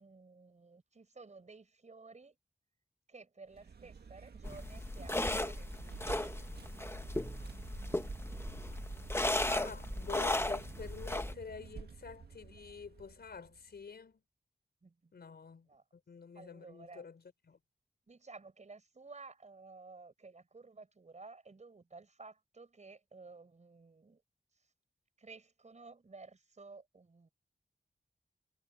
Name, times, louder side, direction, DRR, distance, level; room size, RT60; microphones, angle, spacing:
voice 1, 0.0-2.4 3.1-6.5 14.8-15.1 15.7-15.8 16.3-17.0 18.1-24.2 25.2-27.3, right 3 dB, 45° right, 5.2 m, -54 dB
Vehicle, 3.5-13.8, right 5 dB, 80° right, 1.8 m, -50 dB
sound 1, 4.4-11.3, left 1 dB, 15° left, 1.4 m, -36 dB
voice 2, 9.5-14.2 15.1-15.7 16.1-17.6, left 5 dB, 80° left, 5.0 m, -48 dB
wide cardioid pair, 90°, 16 cm